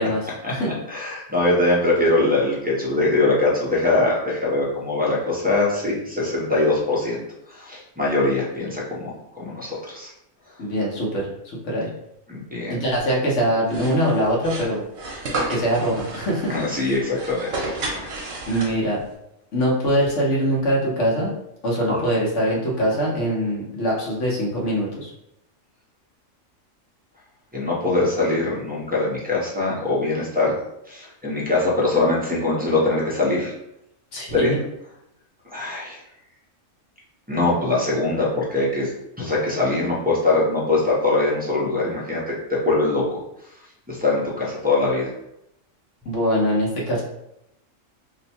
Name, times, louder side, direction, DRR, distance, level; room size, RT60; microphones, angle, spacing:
voice 1, 0.0-0.7 10.6-11.9 12.7-14.8 15.5-16.6 18.5-19.0 19.5-21.3 21.6-25.1 34.1-34.6 46.0-47.0, equal, 70° left, -3 dB, 1.3 m, -23 dB
voice 2, 0.9-7.2 7.5-10.1 12.3-12.8 16.5-17.8 18.5-18.7 21.9-22.0 27.5-30.6 30.9-33.5 34.3-34.5 35.5-36.0 37.3-38.9 39.2-42.4 42.6-43.2 43.9-45.1, left 2 dB, 10° right, -7 dB, 0.6 m, -22 dB
sound 1, 13.7-19.0, right 2 dB, 60° right, 1.0 m, -32 dB
3.0 x 2.2 x 4.2 m, 0.83 s
omnidirectional pair, 1.3 m